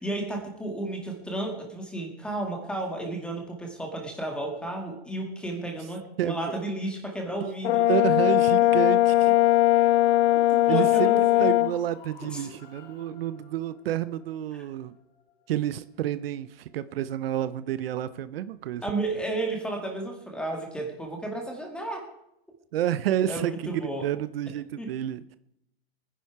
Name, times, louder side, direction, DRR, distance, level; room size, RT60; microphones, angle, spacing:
voice 1, 0.0-7.9 9.7-9.9 10.5-11.5 12.3-12.5 18.8-22.1 23.3-24.1 24.8-24.9, right 2 dB, 5° left, 2 dB, 2.1 m, -33 dB
voice 2, 6.2-6.6 7.4-7.5 7.9-9.3 10.7-11.1 11.4-14.9 15.5-18.8 22.7-25.4, right 11 dB, 65° right, 14 dB, 0.7 m, -29 dB
Brass instrument, 7.6-11.7, left 14 dB, 80° left, 0.5 m, -20 dB
sound 1, 7.6-17.8, left 6 dB, 45° left, 2.8 m, -54 dB
21.5 x 10.5 x 4.7 m, 0.80 s
supercardioid pair, 170°, 31 cm